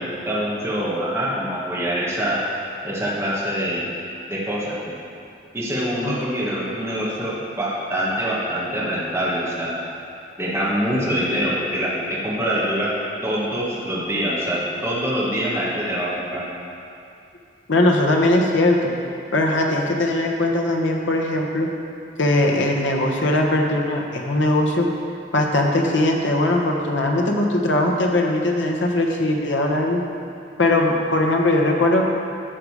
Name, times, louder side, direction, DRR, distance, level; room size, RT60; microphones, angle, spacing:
voice 1, 0.0-2.4 2.8-3.9 4.3-4.9 5.5-9.7 10.4-12.9 13.2-16.4, equal, 15° right, -8 dB, 1.5 m, -24 dB
voice 2, 17.7-18.9 19.3-21.7 22.2-24.9 25.3-30.0 30.6-32.0, left 1 dB, 80° left, 1 dB, 1.2 m, -20 dB
11.5 x 6.7 x 4.9 m, 2.5 s
head